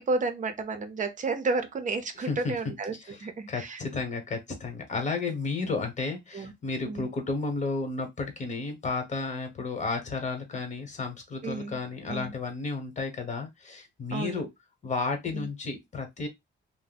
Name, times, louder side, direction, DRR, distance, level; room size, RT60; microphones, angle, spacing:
voice 1, 0.0-2.9 3.2-3.8 6.3-6.5 6.9-7.1 11.4-11.8 12.1-12.3 14.1-14.4 15.3-15.5, right 3 dB, 40° right, 0.7 m, -31 dB
voice 2, 2.2-2.6 3.0-14.5 14.8-16.3, left 3 dB, 35° left, 1.2 m, -32 dB
2.7 x 2.1 x 4.0 m
cardioid pair, 90°, 20 cm